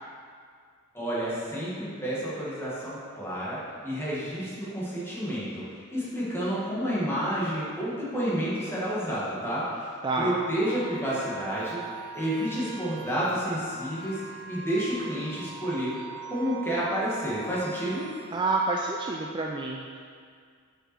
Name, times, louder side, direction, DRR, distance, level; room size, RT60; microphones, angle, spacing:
voice 1, 0.9-3.6 3.8-16.0 16.3-18.1, equal, 10° left, -8 dB, 1.9 m, -30 dB
voice 2, 10.0-10.4 18.3-20.0, right 3 dB, 20° right, 0 dB, 0.3 m, -28 dB
sound 1, 10.6-18.6, right 5 dB, 80° left, 1.0 m, -42 dB
6.2 x 5.5 x 4.5 m, 2.1 s
head